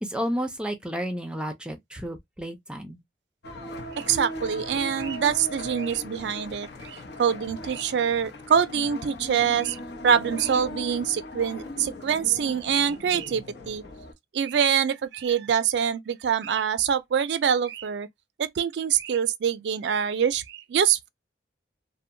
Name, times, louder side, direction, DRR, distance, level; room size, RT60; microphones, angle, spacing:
voice 1, 0.0-3.0, equal, 5° right, 0.4 m, -31 dB
sound 1, 3.4-14.1, left 1 dB, 70° left, 0.8 m, -39 dB
voice 2, 4.0-13.8 14.3-18.1 18.4-21.1, right 8 dB, 75° right, 0.4 m, -25 dB
2.7 x 2.1 x 2.5 m
head